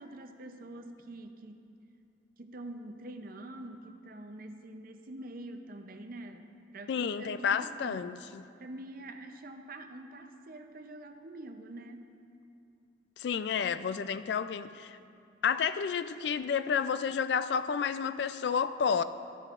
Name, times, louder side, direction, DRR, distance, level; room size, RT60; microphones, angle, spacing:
voice 1, 0.0-1.6 2.4-8.0 8.6-12.1, right 1 dB, 50° right, 6 dB, 0.6 m, -45 dB
voice 2, 6.9-8.5 13.2-15.0 15.4-19.0, left 6 dB, 60° left, 12 dB, 0.3 m, -30 dB
13.0 x 12.5 x 2.5 m, 2.5 s
head